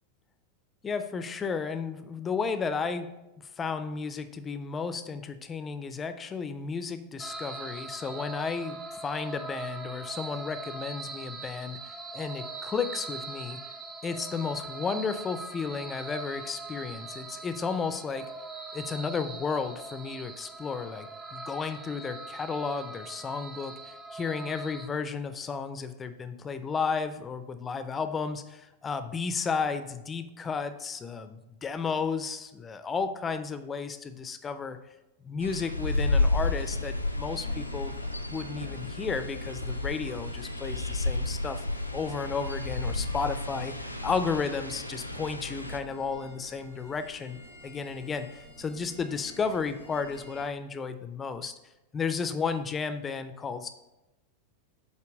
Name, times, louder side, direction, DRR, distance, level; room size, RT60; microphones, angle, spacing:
voice 1, 0.8-3.1 3.4-13.6 14.0-18.3 18.7-34.8 35.2-37.9 38.3-41.7 41.9-43.7 44.0-47.4 47.6-51.5 51.9-53.7, left 5 dB, 20° left, 10 dB, 0.5 m, -33 dB
sound 1, 7.2-24.9, right 3 dB, 15° right, 0.8 m, -41 dB
sound 2, 35.4-45.8, left 2 dB, 90° left, 0.4 m, -31 dB
sound 3, 36.4-50.4, equal, 90° right, 1.2 m, -50 dB
7.6 x 2.8 x 5.0 m, 0.98 s
figure-of-eight pair, 90°, 0 cm